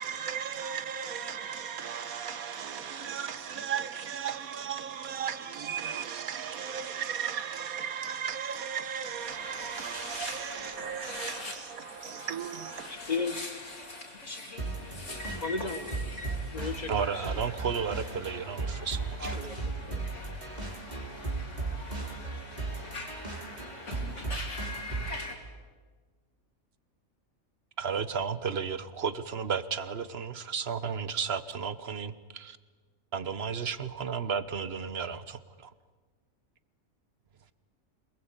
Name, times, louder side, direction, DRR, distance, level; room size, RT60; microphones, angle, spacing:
voice 1, 0.0-13.0 15.1-15.2, right 8 dB, 80° right, 1.6 m, -36 dB
sound 1, 9.2-25.4, left 2 dB, 55° left, 3.6 m, -43 dB
voice 2, 12.9-13.5 15.4-15.9 16.5-17.1 19.2-19.6 19.8-20.0, left 4 dB, 30° left, 1.4 m, -34 dB
sound 2, 14.6-25.2, right 3 dB, 30° right, 3.0 m, -37 dB
voice 3, 16.9-19.4 27.8-32.6 33.1-35.7, right 6 dB, 50° right, 1.2 m, -33 dB
27.5 x 20.5 x 8.9 m
omnidirectional pair, 1.5 m